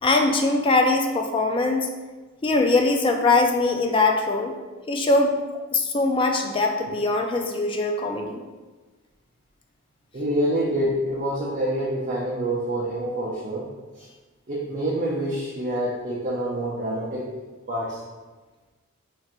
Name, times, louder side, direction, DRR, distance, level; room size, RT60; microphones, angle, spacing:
voice 1, 0.0-1.9 2.4-4.5 4.9-5.3 5.7-8.4, left 3 dB, 25° left, 3 dB, 0.3 m, -21 dB
voice 2, 10.1-13.7 14.0-14.1 14.5-17.3 17.7-18.0, right 1 dB, 40° right, -6 dB, 0.5 m, -26 dB
3.2 x 2.5 x 4.3 m, 1.3 s
head